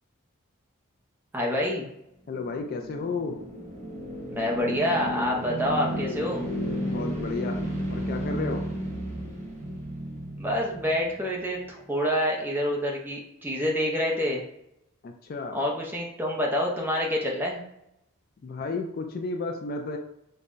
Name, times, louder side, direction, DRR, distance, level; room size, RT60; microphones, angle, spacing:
voice 1, 1.3-1.9 4.3-6.5 10.4-14.4 15.5-17.6, equal, 10° right, -2 dB, 0.6 m, -27 dB
voice 2, 2.3-3.4 6.8-8.6 15.0-15.6 18.4-20.0, left 3 dB, 45° left, 4 dB, 0.3 m, -33 dB
sound 1, 2.4-11.6, equal, 35° right, 0.9 m, -33 dB
5.4 x 2.2 x 2.5 m, 0.82 s
head